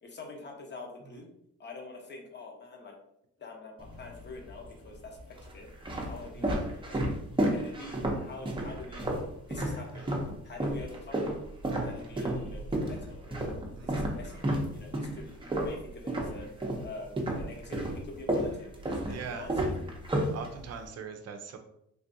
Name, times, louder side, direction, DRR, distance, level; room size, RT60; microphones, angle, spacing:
voice 1, 0.0-1.3 1.6-3.0 3.4-5.7 6.1-7.1 7.5-9.1 9.5-10.1 10.4-11.4 11.8-13.5 13.8-14.5 14.7-16.5 16.8-19.7, left 3 dB, 35° left, 1 dB, 0.9 m, -45 dB
sound 1, 3.8-4.5 5.2-10.3 10.6-16.9 17.2-20.9, right 1 dB, 15° right, 0.7 m, -31 dB
voice 2, 13.7-14.1 19.1-19.5 20.3-21.6, right 6 dB, 55° right, 6 dB, 0.6 m, -41 dB
3.3 x 2.5 x 2.6 m, 0.77 s
cardioid pair, 90°, 30 cm